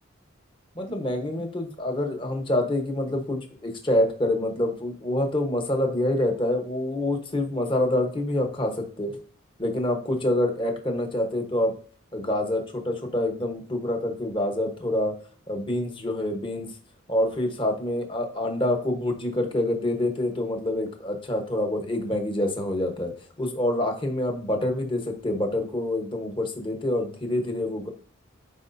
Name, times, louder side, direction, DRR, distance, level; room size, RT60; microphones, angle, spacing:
voice 1, 0.7-9.2 9.6-11.7 12.1-15.2 15.5-16.7 17.1-23.1 23.4-27.9, left 1 dB, 25° left, 4 dB, 1.1 m, -26 dB
10.5 x 4.8 x 2.7 m, 0.44 s
head